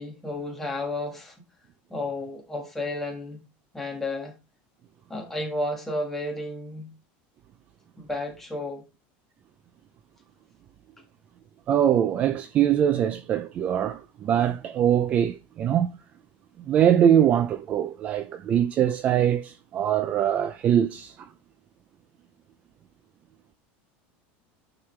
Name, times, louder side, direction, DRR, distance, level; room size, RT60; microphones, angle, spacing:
voice 1, 0.0-1.4 1.9-3.4 3.7-4.3 5.1-6.9 8.0-8.8, left 2 dB, 5° left, 1.4 m, -32 dB
voice 2, 11.7-15.9 16.7-21.3, right 10 dB, 25° right, 0.4 m, -22 dB
9.5 x 4.8 x 3.2 m
cardioid pair, 180°, 5 cm